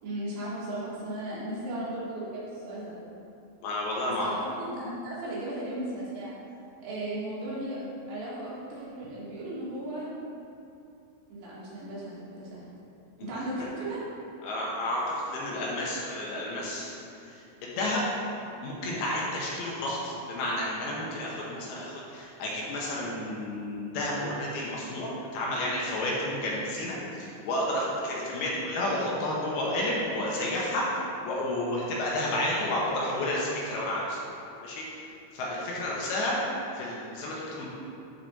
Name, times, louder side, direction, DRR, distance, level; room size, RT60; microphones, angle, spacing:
voice 1, 0.0-2.9 4.2-6.3 6.8-10.1 11.3-12.6 13.2-14.0, right 1 dB, 75° right, -8 dB, 4.2 m, -36 dB
voice 2, 3.6-4.3 14.4-16.9 17.2-18.0 18.6-34.2 34.6-35.0 35.3-36.4 36.7-37.7, left 1 dB, 70° left, -4 dB, 2.8 m, -31 dB
11.5 x 4.9 x 4.1 m, 2.7 s
omnidirectional pair, 5.0 m